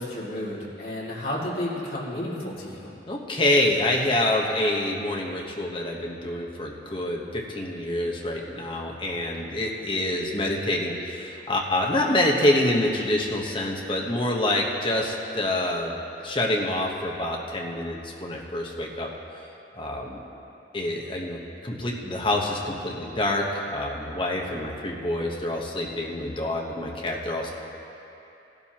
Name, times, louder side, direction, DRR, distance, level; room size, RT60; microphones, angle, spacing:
voice 1, 0.0-2.9, left 1 dB, 50° left, -6 dB, 2.2 m, -32 dB
voice 2, 3.1-15.9 16.2-19.1 19.7-20.2 20.7-27.5, left 1 dB, 25° left, -1 dB, 1.1 m, -26 dB
16.5 x 12.0 x 2.9 m, 2.9 s
head